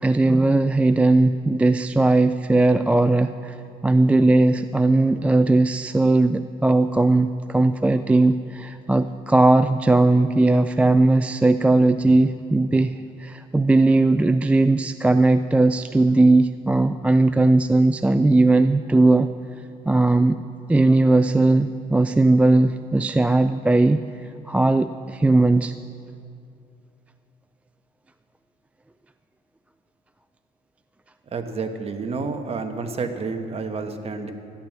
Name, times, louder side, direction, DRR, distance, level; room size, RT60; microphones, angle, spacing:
voice 1, 0.0-3.6 3.8-19.3 19.9-20.4 20.7-24.0 24.5-25.7, right 2 dB, 10° right, 11 dB, 0.3 m, -18 dB
voice 2, 31.3-34.3, right 4 dB, 35° right, 6 dB, 1.3 m, -29 dB
14.5 x 10.5 x 7.4 m, 2.5 s
cardioid pair, 110°, 17 cm